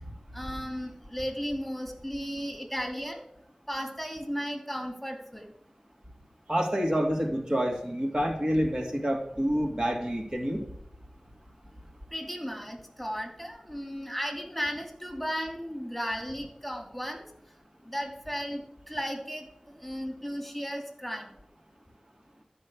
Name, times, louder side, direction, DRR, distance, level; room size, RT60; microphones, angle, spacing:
voice 1, 0.3-3.2 3.7-5.5 12.1-17.2 17.8-18.6 18.9-21.3, equal, 5° left, 2 dB, 2.8 m, -35 dB
voice 2, 6.5-10.6, equal, 40° right, 0 dB, 2.4 m, -28 dB
14.0 x 5.6 x 8.5 m, 0.73 s
wide cardioid pair, 45°, 2 cm